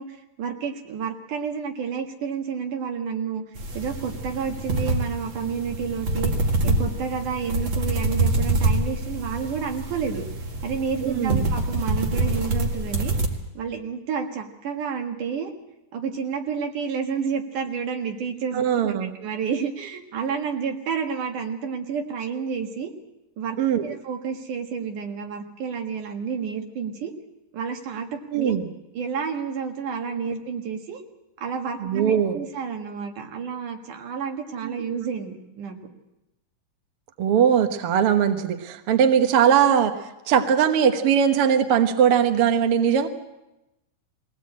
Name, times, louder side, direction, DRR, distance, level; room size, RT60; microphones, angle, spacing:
voice 1, 0.0-3.4 3.7-6.3 6.6-10.3 10.6-13.1 13.5-15.5 15.9-22.9 23.4-27.1 27.5-28.6 28.9-31.0 31.4-35.8, right 6 dB, 70° right, 4 dB, 3.2 m, -30 dB
sound 1, 3.6-13.3, right 2 dB, 40° right, 2.2 m, -26 dB
voice 2, 11.0-11.5 18.5-19.1 23.6-23.9 28.3-28.7 31.8-32.4 34.6-34.8 37.2-43.1, right 8 dB, 55° right, 7 dB, 1.7 m, -20 dB
21.5 x 17.5 x 8.6 m, 0.96 s
omnidirectional pair, 3.7 m